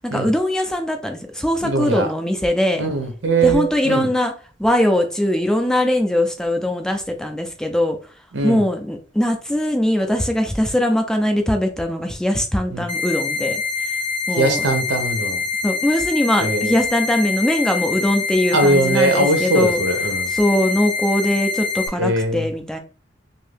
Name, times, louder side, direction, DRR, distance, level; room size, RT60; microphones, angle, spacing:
voice 1, 0.0-2.8 3.4-4.3 4.6-8.0 8.4-13.6 14.3-14.6 15.6-19.8 20.3-22.8, left 1 dB, 5° left, 4 dB, 0.3 m, -21 dB
voice 2, 1.6-2.1 2.8-4.1 8.3-8.7 12.7-12.8 14.4-15.4 16.4-16.8 18.5-20.3 22.0-22.5, right 2 dB, 75° right, 5 dB, 0.8 m, -20 dB
sound 1, 12.9-21.9, left 5 dB, 30° left, 0.7 m, -25 dB
2.7 x 2.6 x 3.4 m, 0.38 s
head